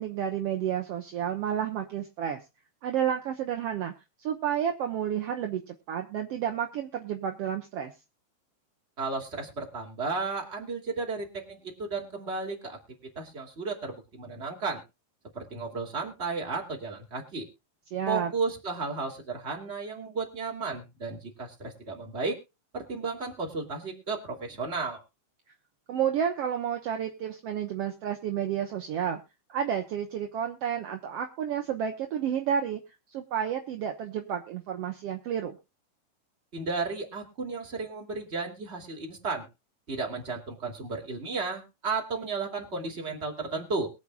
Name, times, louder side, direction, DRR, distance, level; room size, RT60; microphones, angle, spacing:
voice 1, 0.0-2.4 2.8-3.9 4.2-7.9 17.9-18.3 25.9-29.2 29.5-32.8 33.1-35.6, right 9 dB, 65° right, 4 dB, 1.5 m, -31 dB
voice 2, 9.0-12.8 13.2-14.8 15.3-17.5 18.1-22.4 22.7-25.0 36.5-39.5 39.9-43.9, right 4 dB, 20° right, 1 dB, 2.4 m, -33 dB
22.5 x 8.0 x 2.3 m, 0.27 s
omnidirectional pair, 4.1 m